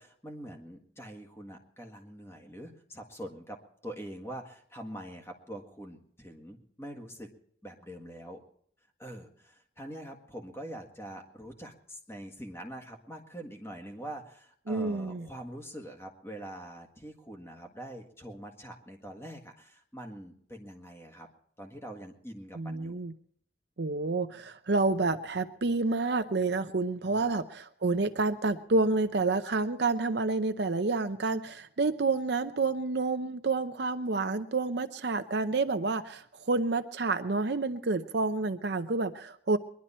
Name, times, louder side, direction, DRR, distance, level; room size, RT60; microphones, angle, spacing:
voice 1, 0.0-7.3 7.6-8.4 9.0-21.3 21.6-23.0 27.0-27.3, right 1 dB, 15° left, 3 dB, 1.7 m, -44 dB
voice 2, 14.7-15.3 22.6-23.1 23.8-39.6, right 3 dB, 55° right, 8 dB, 0.6 m, -29 dB
22.0 x 11.5 x 4.3 m, 0.62 s
head